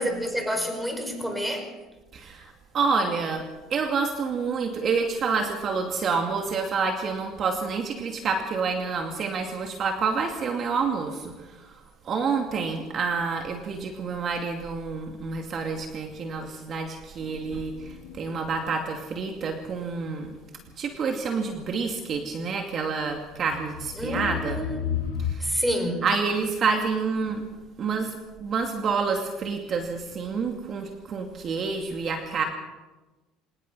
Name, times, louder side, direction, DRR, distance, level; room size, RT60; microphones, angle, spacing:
voice 1, 0.0-1.7 24.0-25.0 25.4-26.1, equal, 5° right, 5 dB, 5.6 m, -29 dB
voice 2, 2.1-11.7 12.0-20.4 20.8-24.6 25.2-25.5 26.0-27.4 27.8-32.4, right 5 dB, 45° right, 3 dB, 2.4 m, -28 dB
sound 1, 17.2-19.1 20.4-20.5 23.4-25.3, left 9 dB, 90° left, 1.4 m, -33 dB
25.5 x 19.5 x 5.6 m, 1.2 s
supercardioid pair, 95°, 0 cm